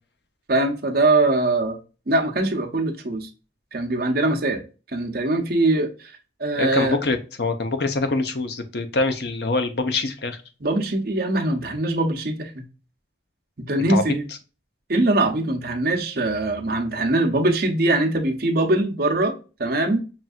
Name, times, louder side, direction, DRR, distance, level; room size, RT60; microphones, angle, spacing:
voice 1, 0.5-1.8 2.1-3.3 3.7-4.6 4.9-6.1 6.4-7.0 10.6-12.6 13.6-14.2 14.9-19.3 19.6-20.0, right 2 dB, 50° right, 0.8 m, -22 dB
voice 2, 6.6-10.4 13.9-14.0, left 3 dB, 60° left, 0.7 m, -24 dB
5.7 x 2.6 x 2.3 m
head